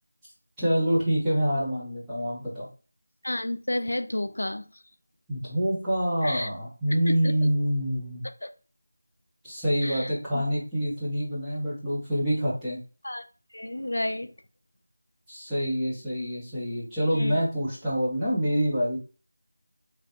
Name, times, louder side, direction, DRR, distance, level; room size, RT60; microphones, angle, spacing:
voice 1, 0.6-2.7 5.3-8.2 9.4-12.8 15.3-19.0, equal, ahead, -13 dB, 0.5 m, -26 dB
voice 2, 3.2-4.7 6.2-6.5 6.9-7.5 8.4-8.5 9.8-10.4 13.0-13.2 13.5-14.3 17.1-17.4, left 1 dB, 75° left, 10 dB, 0.4 m, -31 dB
3.1 x 2.7 x 2.5 m, 0.36 s
figure-of-eight pair, 180°, 0 cm